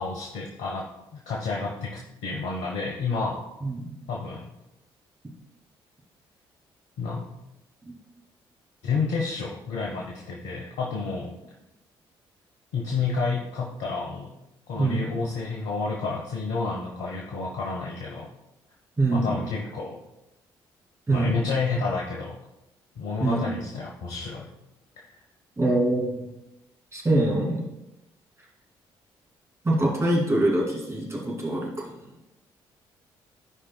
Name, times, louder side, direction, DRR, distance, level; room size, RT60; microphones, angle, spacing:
voice 1, 0.0-3.4 4.1-4.5 7.0-7.3 8.8-11.4 12.7-14.3 14.7-18.3 19.1-20.0 21.1-22.4 23.0-24.5 25.0-25.1, left 4 dB, 75° left, -3 dB, 1.0 m, -30 dB
voice 2, 14.7-15.1 19.0-19.3 21.1-21.4 23.2-23.4 25.6-26.2 26.9-27.7 29.6-31.9, right 2 dB, 25° right, -3 dB, 2.8 m, -24 dB
13.5 x 5.0 x 2.3 m, 0.94 s
hypercardioid pair, 45°, 12 cm